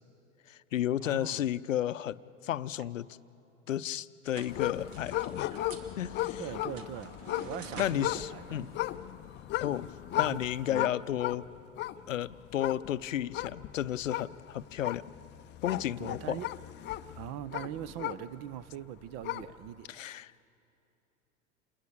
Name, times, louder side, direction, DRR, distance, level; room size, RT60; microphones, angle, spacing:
voice 1, 0.5-3.1 3.7-5.5 6.0-6.4 7.8-8.7 9.6-9.9 10.2-11.5 12.1-15.0 15.6-16.4 19.9-20.3, left 11 dB, 75° left, 16 dB, 0.7 m, -33 dB
voice 2, 1.0-1.4 6.4-7.2 7.4-8.7 10.1-10.4 10.7-10.9 16.0-16.5 17.2-20.1, right 11 dB, 40° right, 19 dB, 0.8 m, -41 dB
sound 1, 4.3-9.5, right 4 dB, 75° right, 2.4 m, -49 dB
sound 2, 4.5-18.6 19.0-19.7, left 15 dB, 30° left, 0.6 m, -36 dB
28.0 x 21.5 x 8.5 m, 2.8 s
figure-of-eight pair, 90°, 38 cm